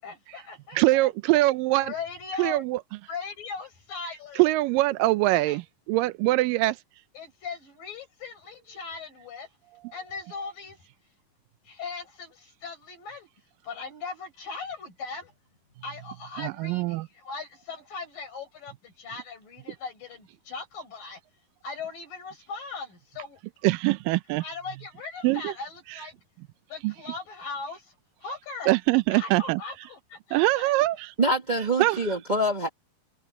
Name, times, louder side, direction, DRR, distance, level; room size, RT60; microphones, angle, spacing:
voice 1, 0.0-1.1 1.7-2.6 3.1-4.4 5.5-5.6 7.2-9.5 9.9-10.9 11.7-13.3 13.6-15.3 15.8-21.2 21.6-23.4 24.4-26.2 26.7-28.0 28.2-28.7 29.1-30.8, left 4 dB, 80° left, 8.5 m, -39 dB
voice 2, 0.7-1.9 2.4-2.8 4.4-6.8 16.4-17.1 23.6-24.4 25.2-25.5 26.8-26.9 28.7-29.6 30.3-31.1 31.8-32.0, right 19 dB, 90° right, 2.3 m, -23 dB
voice 3, 31.2-32.7, right 1 dB, 60° right, 0.4 m, -25 dB
omnidirectional pair, 3.9 m